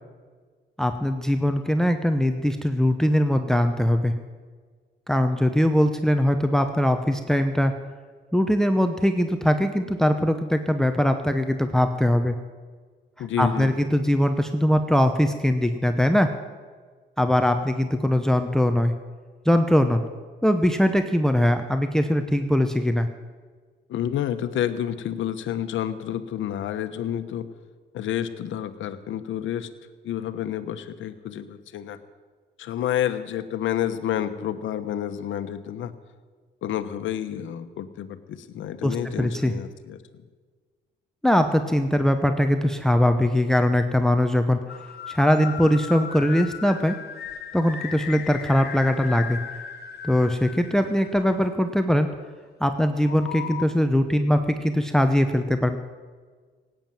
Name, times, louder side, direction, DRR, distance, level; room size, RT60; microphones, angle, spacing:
voice 1, 0.8-4.1 5.1-7.7 8.3-12.3 13.4-16.3 17.2-18.9 19.4-20.0 20.4-23.1 38.8-39.5 41.2-44.6 45.1-47.0 47.5-49.4 50.0-52.1 52.6-55.8, left 1 dB, ahead, 8 dB, 0.9 m, -21 dB
voice 2, 13.2-13.7 23.9-27.5 27.9-29.7 30.0-32.0 32.6-35.9 36.6-40.0, left 10 dB, 75° left, 10 dB, 1.1 m, -29 dB
sound 1, 44.7-51.9 53.0-53.7, left 8 dB, 55° left, 1.4 m, -37 dB
17.5 x 9.1 x 7.6 m, 1.5 s
cardioid pair, 90°, 20 cm